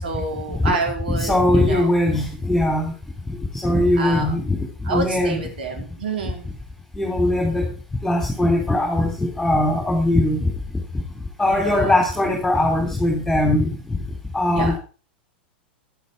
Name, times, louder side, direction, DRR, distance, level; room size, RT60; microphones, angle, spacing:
voice 1, 0.0-1.9 4.0-4.3 4.8-6.5 11.4-11.9 14.5-14.8, right 3 dB, 65° right, 3 dB, 4.5 m, -28 dB
voice 2, 1.1-2.9 3.3-3.4 3.6-5.4 6.9-7.7 8.0-10.4 11.4-14.0 14.3-14.8, left 1 dB, 5° left, 0 dB, 3.8 m, -20 dB
11.5 x 11.5 x 4.9 m, 0.37 s
figure-of-eight pair, 95°, 6 cm